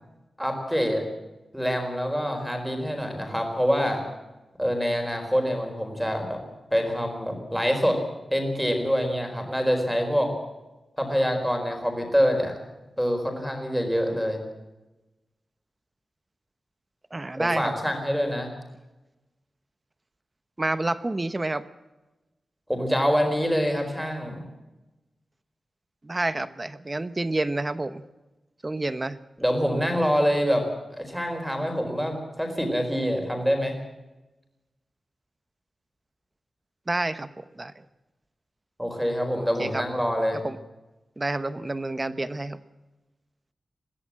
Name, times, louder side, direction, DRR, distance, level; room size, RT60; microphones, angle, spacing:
voice 1, 0.4-1.0 1.5-4.0 4.6-6.4 6.7-8.0 8.3-10.3 11.0-12.5 13.0-14.4 17.4-18.5 22.7-24.4 29.4-33.8 38.8-40.4, equal, ahead, 4 dB, 4.6 m, -25 dB
voice 2, 17.1-17.7 20.6-21.6 26.0-28.0 28.6-29.2 36.9-37.7 39.6-39.8 40.4-40.6 41.2-42.6, right 2 dB, 20° right, 13 dB, 1.0 m, -29 dB
21.5 x 16.0 x 7.5 m, 1.1 s
wide cardioid pair, 155°, 0 cm